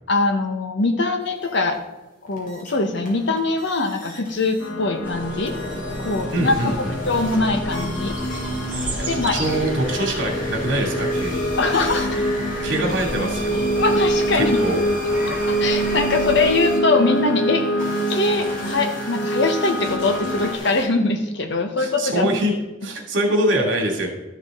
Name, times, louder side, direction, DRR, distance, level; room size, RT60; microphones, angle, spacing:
voice 1, 0.1-1.8 2.3-5.5 6.0-6.7 7.1-8.1 9.1-9.3 11.6-12.2 13.8-14.6 15.3-17.6 18.1-22.3, left 3 dB, 65° left, 6 dB, 1.2 m, -22 dB
sound 1, 1.2-1.8 2.3-4.7 5.1-20.9, left 1 dB, 50° left, 3.3 m, -38 dB
sound 2, 4.6-20.6, equal, 85° left, 1.3 m, -26 dB
sound 3, 5.0-16.5, right 1 dB, 10° right, 3.2 m, -32 dB
voice 2, 6.3-6.9 9.0-11.5 12.6-13.6 14.6-14.8 21.8-22.6 22.8-24.1, right 1 dB, 70° right, 0 dB, 2.6 m, -23 dB
12.5 x 6.7 x 3.8 m, 1.1 s
head